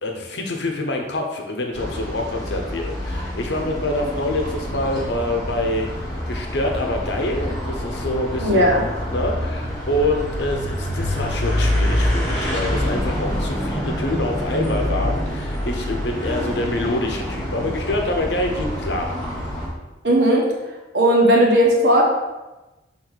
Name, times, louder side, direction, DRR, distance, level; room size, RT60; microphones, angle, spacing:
voice 1, 0.0-8.7 9.1-19.1, left 1 dB, 65° left, 2 dB, 0.9 m, -26 dB
sound 1, 1.7-19.7, equal, 15° left, 1.4 m, -26 dB
voice 2, 8.4-8.8 20.0-20.4 20.9-22.0, right 1 dB, 65° right, -2 dB, 1.4 m, -16 dB
6.4 x 3.8 x 4.0 m, 1.1 s
head